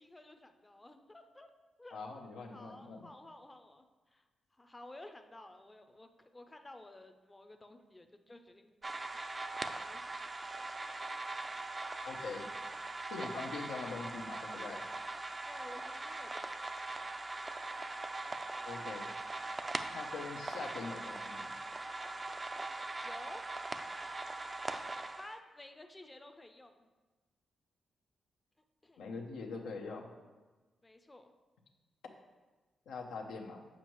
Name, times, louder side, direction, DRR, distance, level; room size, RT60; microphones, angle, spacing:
voice 1, 0.0-1.5 1.8-2.0 2.3-4.3 4.5-9.2 9.6-10.2 15.5-16.6 23.0-23.5 25.2-26.9 28.8-29.0 30.8-31.3, left 2 dB, 20° left, 6 dB, 0.5 m, -53 dB
voice 2, 1.9-3.1 12.0-12.5 13.1-14.8 18.6-19.1 19.9-21.5 29.0-30.1 32.9-33.6, left 4 dB, 90° left, 1 dB, 0.7 m, -43 dB
sound 1, 8.8-25.4, right 2 dB, 30° right, 0.4 m, -41 dB
7.4 x 5.3 x 3.1 m, 1.2 s
cardioid pair, 60°, 0 cm